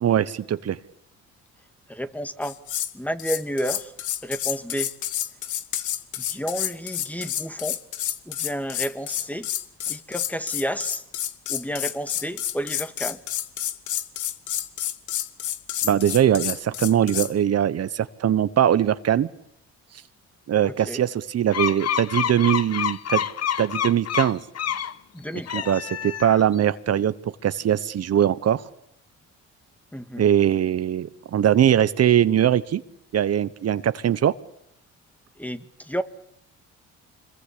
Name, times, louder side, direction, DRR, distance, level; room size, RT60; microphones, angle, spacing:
voice 1, 0.0-0.8 15.8-19.3 20.5-23.3 23.6-24.4 25.5-27.1 27.4-28.6 30.2-32.8 33.1-34.3, right 10 dB, 55° right, 14 dB, 1.1 m, -21 dB
voice 2, 1.9-2.6 2.9-3.9 4.2-4.9 6.3-7.8 8.3-9.5 9.9-11.0 11.5-13.2 20.6-21.0 25.1-25.7 29.9-30.3 35.4-36.0, equal, 5° left, 11 dB, 1.8 m, -31 dB
sound 1, 2.4-2.9 3.2-17.3, left 11 dB, 75° left, 1.5 m, -29 dB
sound 2, 21.5-24.9 25.4-26.6, left 9 dB, 55° left, 1.2 m, -27 dB
26.5 x 22.0 x 8.5 m, 0.72 s
cardioid pair, 90°, 30 cm